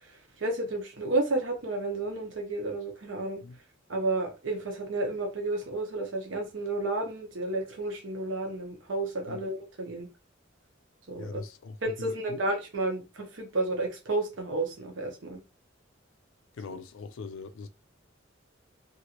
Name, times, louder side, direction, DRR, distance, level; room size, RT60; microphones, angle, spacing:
voice 1, 0.1-3.4 3.9-10.1 11.1-11.4 11.8-15.4 16.7-16.8, right 2 dB, 70° right, 0.8 m, -31 dB
voice 2, 11.1-12.4 16.5-17.7, left 4 dB, 85° left, 0.4 m, -41 dB
3.0 x 2.5 x 2.9 m
head